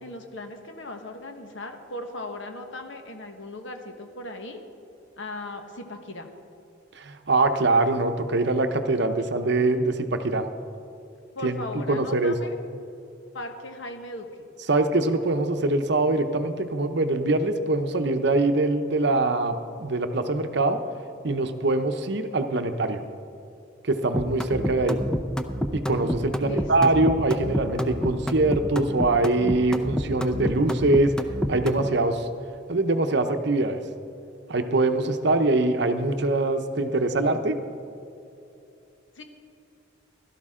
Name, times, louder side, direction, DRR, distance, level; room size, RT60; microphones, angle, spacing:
voice 1, 0.0-4.6 5.2-6.3 11.3-12.5 13.3-14.3 22.8-23.1 26.4-26.7 39.1-39.2, left 2 dB, 70° left, 5 dB, 1.3 m, -38 dB
voice 2, 7.0-10.5 11.4-12.3 14.7-20.8 21.2-23.0 23.8-25.0 25.7-31.2 31.5-32.3 32.7-33.8 34.5-37.6, right 2 dB, 60° right, 8 dB, 0.8 m, -23 dB
sound 1, 24.1-31.9, equal, 5° left, 0.5 m, -28 dB
16.5 x 12.5 x 3.7 m, 2.7 s
head